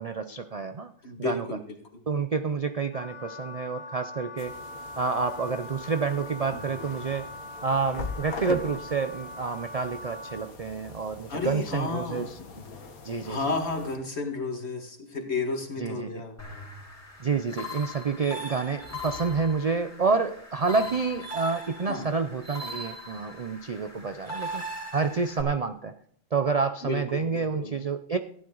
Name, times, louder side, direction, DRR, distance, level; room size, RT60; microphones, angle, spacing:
voice 1, 0.0-0.9 1.2-1.5 2.1-4.5 5.0-7.3 7.6-12.4 13.0-13.4 15.8-16.2 17.2-25.9 26.3-28.2, right 4 dB, 60° right, 9 dB, 0.3 m, -29 dB
voice 2, 1.0-2.0 11.3-12.6 13.2-16.4 21.9-22.1 26.8-27.7, left 3 dB, 50° left, 3 dB, 2.1 m, -32 dB
Wind instrument woodwind instrument, 2.9-10.5, left 1 dB, 30° left, 1.8 m, -42 dB
sound 1, 4.4-14.0, left 4 dB, 85° left, 1.9 m, -42 dB
sound 2, 16.4-25.4, left 1 dB, 10° left, 2.7 m, -40 dB
14.5 x 10.5 x 3.9 m, 0.63 s
omnidirectional pair, 1.5 m